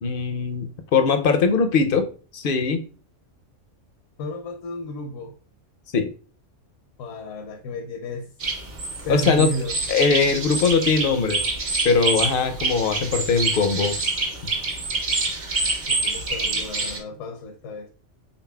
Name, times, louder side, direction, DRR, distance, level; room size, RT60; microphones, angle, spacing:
voice 1, 0.0-2.1 2.3-2.8 5.9-6.1 9.1-9.5 9.9-11.4 11.8-14.0, left 5 dB, 60° left, 0.6 m, -21 dB
voice 2, 4.2-5.4 7.0-8.3 9.0-9.8 15.9-17.9, equal, 80° left, 1.0 m, -32 dB
sound 1, 8.4-17.0, right 3 dB, 50° right, 1.1 m, -26 dB
4.1 x 3.8 x 2.2 m
omnidirectional pair, 1.3 m